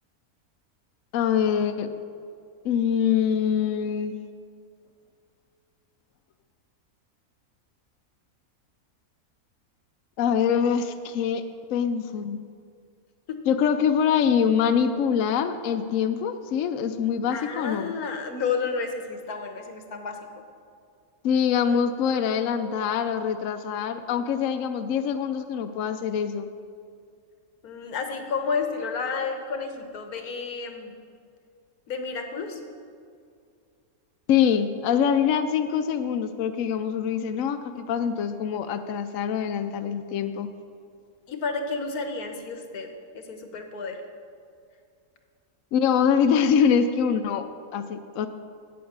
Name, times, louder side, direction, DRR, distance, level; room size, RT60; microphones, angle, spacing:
voice 1, 1.1-1.9 2.6-4.2 10.2-11.4 11.7-12.4 13.5-17.9 21.2-26.5 34.3-40.5 45.7-47.4 47.7-48.3, left 7 dB, 70° left, 8 dB, 0.9 m, -24 dB
voice 2, 17.3-20.2 27.6-30.9 31.9-32.6 41.3-42.9 43.1-44.0, left 5 dB, 90° left, 5 dB, 1.5 m, -31 dB
8.7 x 8.5 x 7.2 m, 2.3 s
omnidirectional pair, 1.5 m